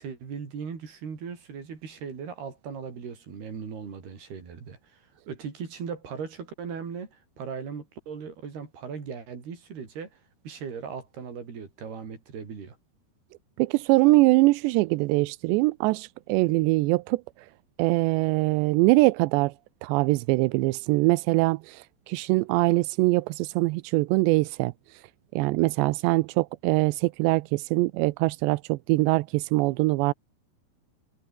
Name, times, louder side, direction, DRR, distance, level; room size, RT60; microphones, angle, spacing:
voice 1, 0.0-5.0 5.3-10.2 10.4-12.8, right 6 dB, 60° right, 6.6 m, -38 dB
voice 2, 13.6-17.5 17.8-19.5 19.8-25.0 25.3-30.1, right 22 dB, 80° right, 2.8 m, -23 dB
omnidirectional pair, 5.2 m